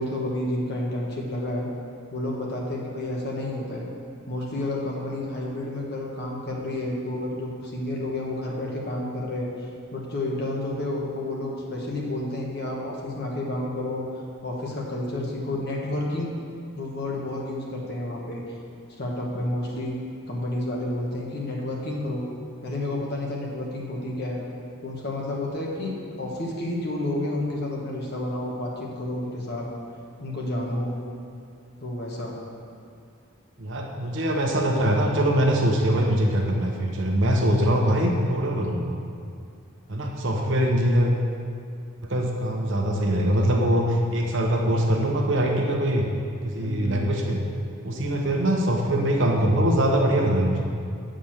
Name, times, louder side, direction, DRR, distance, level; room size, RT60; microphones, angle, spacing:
voice 1, 0.0-1.7 2.1-3.9 4.3-9.5 9.9-14.1 14.4-16.4 16.8-18.4 19.0-20.0 20.3-22.2 22.6-24.4 24.8-29.7 30.2-30.9 31.8-32.4 46.6-47.0, left 1 dB, 50° left, -2 dB, 1.5 m, -30 dB
voice 2, 33.6-39.0 39.9-41.1 42.1-46.1 46.4-47.4 47.8-50.7, right 1 dB, 55° right, 0 dB, 1.0 m, -23 dB
8.0 x 5.1 x 7.3 m, 2.3 s
head